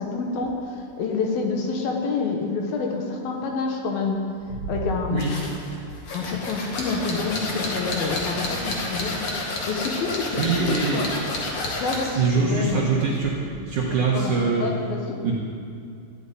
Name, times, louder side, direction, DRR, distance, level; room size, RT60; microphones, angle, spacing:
voice 1, 0.0-4.2 4.7-5.3 6.1-11.1 11.8-12.9 13.9-15.2, left 4 dB, 65° left, 1 dB, 2.6 m, -28 dB
sound 1, 5.2-12.2, left 2 dB, 50° left, 2.1 m, -30 dB
voice 2, 10.4-11.1 12.0-13.3 13.7-14.6 15.2-15.3, right 4 dB, 65° right, -4 dB, 2.0 m, -23 dB
14.5 x 8.5 x 9.5 m, 2.4 s
omnidirectional pair, 5.7 m